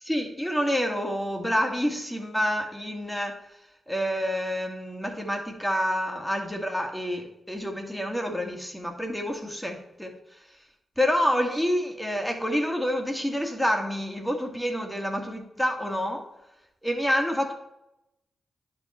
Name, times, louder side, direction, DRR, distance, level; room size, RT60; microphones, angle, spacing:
voice 1, 0.0-3.4 3.9-10.1 11.0-16.3 16.8-17.5, equal, 5° left, 2 dB, 1.9 m, -28 dB
10.5 x 4.6 x 4.3 m, 0.87 s
supercardioid pair, 50°, 0 cm